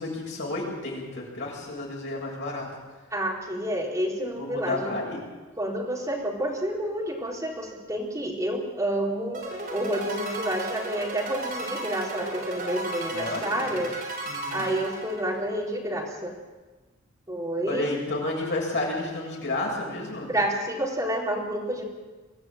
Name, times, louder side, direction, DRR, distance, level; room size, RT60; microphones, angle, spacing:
voice 1, 0.0-2.7 4.4-5.2 13.1-13.8 14.3-14.7 17.7-20.3, left 2 dB, 60° left, -2 dB, 7.6 m, -31 dB
voice 2, 3.1-4.9 5.6-9.4 9.7-13.9 14.5-16.3 17.3-18.0 20.3-21.9, right 1 dB, 15° right, -2 dB, 4.1 m, -29 dB
sound 1, 9.3-15.6, right 2 dB, 40° right, 6.7 m, -35 dB
23.5 x 14.5 x 9.1 m, 1.2 s
head